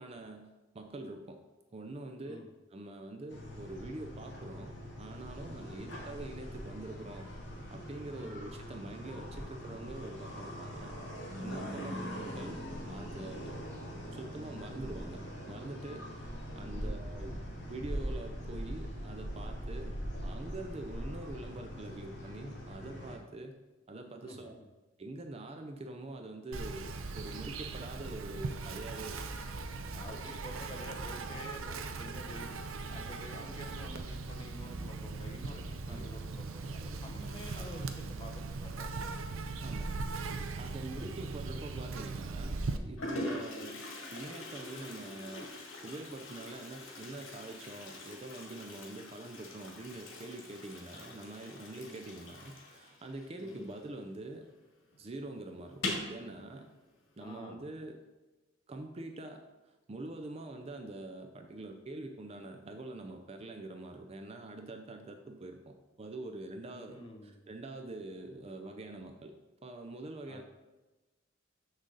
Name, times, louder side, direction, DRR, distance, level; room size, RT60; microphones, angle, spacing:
voice 1, 0.0-1.4 1.7-2.4 2.7-7.3 7.7-11.0 11.4-12.6 12.9-13.6 14.1-15.2 15.5-23.5 23.9-24.6 25.0-29.2 35.9-36.1 39.6-39.9 40.6-42.6 42.8-43.8 44.1-45.5 45.8-54.4 55.0-56.7 57.2-58.0 58.7-69.3 69.6-70.4, right 2 dB, 30° right, 5 dB, 0.5 m, -45 dB
sound 1, 3.3-23.1, equal, 60° left, 1.9 m, -42 dB
Insect, 26.5-42.8, right 3 dB, 80° right, 0.6 m, -39 dB
voice 2, 29.9-32.5 32.9-39.1 41.0-41.1 43.1-43.5 51.8-52.0 53.4-53.7 57.2-57.6 66.7-67.4 70.3-70.4, left 1 dB, 25° left, 0 dB, 0.9 m, -49 dB
Toilet flush, 41.5-41.9 42.6-42.7 43.0-54.3 54.5-54.6 54.9-55.0 55.7-56.2, left 2 dB, 85° left, 2.0 m, -43 dB
6.5 x 6.4 x 3.9 m, 1.1 s
head